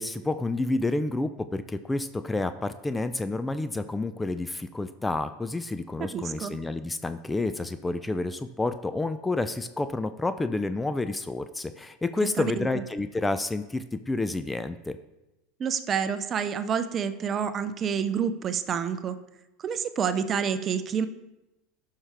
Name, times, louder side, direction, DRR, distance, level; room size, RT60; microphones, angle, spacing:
voice 1, 0.0-15.0, left 2 dB, 15° left, 11 dB, 0.4 m, -29 dB
voice 2, 6.0-6.5 12.4-12.7 15.6-19.2 19.6-21.1, right 7 dB, 35° right, 12 dB, 0.6 m, -28 dB
11.0 x 5.7 x 3.4 m, 0.96 s
hypercardioid pair, 95°, 0 cm